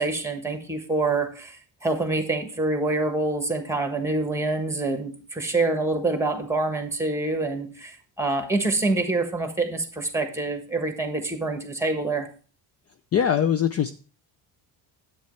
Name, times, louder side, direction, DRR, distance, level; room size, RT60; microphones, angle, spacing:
voice 1, 0.0-12.3, right 2 dB, 5° right, 6 dB, 1.4 m, -26 dB
voice 2, 13.1-13.9, left 9 dB, 35° left, 11 dB, 0.4 m, -21 dB
9.4 x 8.5 x 3.2 m, 0.38 s
cardioid pair, 125°, 42 cm